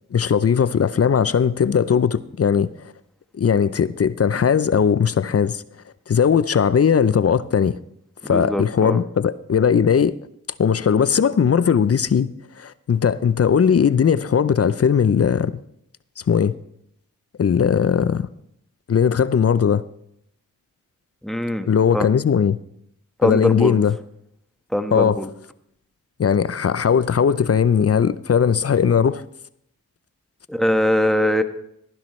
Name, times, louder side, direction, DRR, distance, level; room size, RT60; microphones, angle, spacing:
voice 1, 0.1-2.7 3.4-5.6 6.1-7.8 8.3-10.1 10.6-12.3 12.6-15.5 16.3-16.5 17.4-18.2 18.9-19.8 21.7-22.6 23.2-23.9 24.9-25.2 26.2-29.2, left 7 dB, 45° left, 0.6 m, -18 dB
voice 2, 8.3-9.0 21.2-22.1 23.2-23.8 24.7-25.3 30.5-31.4, left 1 dB, ahead, 1.3 m, -22 dB
16.5 x 10.5 x 3.2 m
cardioid pair, 45°, 33 cm